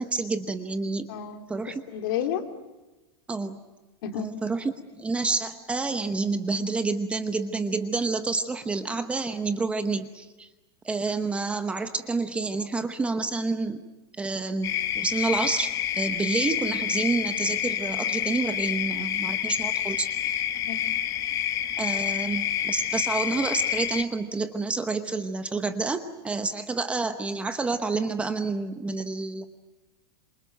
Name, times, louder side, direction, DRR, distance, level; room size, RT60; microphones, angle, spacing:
voice 1, 0.0-1.1 1.5-1.8 3.3-3.6 4.2-10.5 10.8-13.8 14.1-20.1 21.8-29.4, right 3 dB, 10° right, 8 dB, 0.9 m, -29 dB
voice 2, 1.1-1.4 1.9-2.5 4.0-4.3 20.6-20.8, left 9 dB, 60° left, 6 dB, 2.7 m, -30 dB
sound 1, 14.6-24.0, left 10 dB, 25° left, 0.9 m, -28 dB
27.0 x 24.0 x 9.1 m, 1.1 s
supercardioid pair, 170°, 13 cm